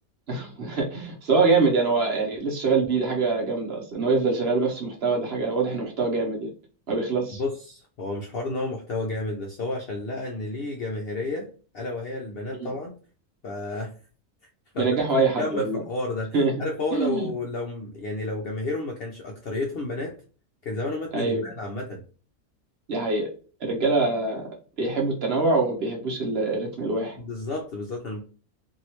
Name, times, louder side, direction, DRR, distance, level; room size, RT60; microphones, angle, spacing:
voice 1, 0.3-6.5 6.9-7.4 12.6-12.7 14.8-15.8 16.3-16.5 16.9-17.3 21.1-21.5 22.9-23.3 23.6-24.5 24.8-27.2, right 3 dB, 55° right, 0 dB, 0.9 m, -24 dB
voice 2, 7.4-11.5 11.7-12.9 13.4-13.9 14.7-20.2 20.6-22.0 27.2-28.2, left 2 dB, 60° left, 1 dB, 0.6 m, -31 dB
3.0 x 2.7 x 2.9 m, 0.38 s
omnidirectional pair, 1.5 m